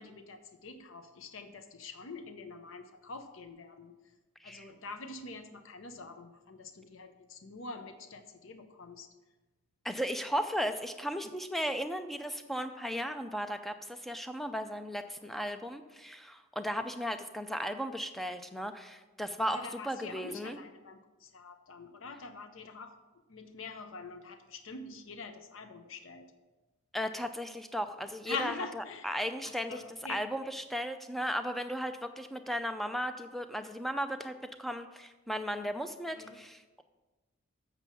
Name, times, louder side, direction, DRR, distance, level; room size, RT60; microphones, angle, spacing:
voice 1, 0.0-4.0 4.4-9.1 19.5-23.0 23.3-26.3 28.3-29.1 29.4-30.2 36.1-36.4, left 4 dB, 70° left, 8 dB, 0.7 m, -45 dB
voice 2, 9.8-19.6 19.8-20.6 26.9-29.8 30.1-34.3 34.6-36.8, equal, ahead, 8 dB, 0.4 m, -36 dB
7.3 x 6.9 x 6.0 m, 1.2 s
head